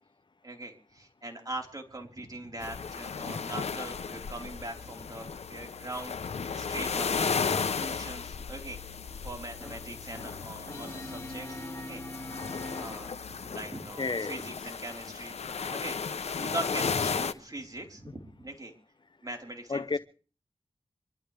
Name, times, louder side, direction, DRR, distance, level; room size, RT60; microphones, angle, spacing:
voice 1, 0.4-8.8 9.2-12.0 12.7-15.4 15.7-16.0 16.4-18.7 19.2-20.0, right 1 dB, 35° right, 4.5 m, -41 dB
sound 1, 2.6-17.3, left 5 dB, 85° left, 0.8 m, -35 dB
Brass instrument, 9.6-13.4, left 1 dB, 25° left, 7.5 m, -42 dB
voice 2, 14.0-14.4 19.7-20.0, left 4 dB, 45° left, 0.6 m, -31 dB
25.5 x 12.5 x 3.5 m
cardioid pair, 45°, 11 cm